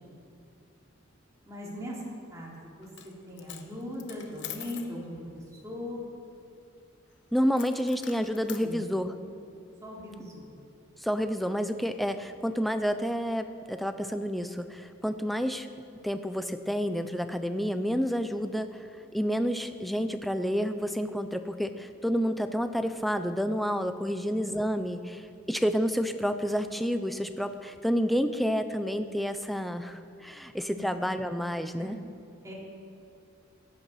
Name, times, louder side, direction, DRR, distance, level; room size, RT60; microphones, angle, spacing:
voice 1, 1.4-2.0 2.3-6.0 8.6-8.8 9.1-9.4 9.8-10.5 30.7-30.8 31.7-31.9 32.4-32.5, left 1 dB, 15° right, -4 dB, 3.0 m, -40 dB
Coin (dropping), 2.8-3.1 3.4-4.9 7.6-8.7, left 10 dB, 55° left, 1.0 m, -44 dB
voice 2, 7.3-9.1 11.0-15.7 16.0-18.9 19.1-32.0, equal, ahead, 9 dB, 0.5 m, -29 dB
15.0 x 11.0 x 5.7 m, 2.6 s
head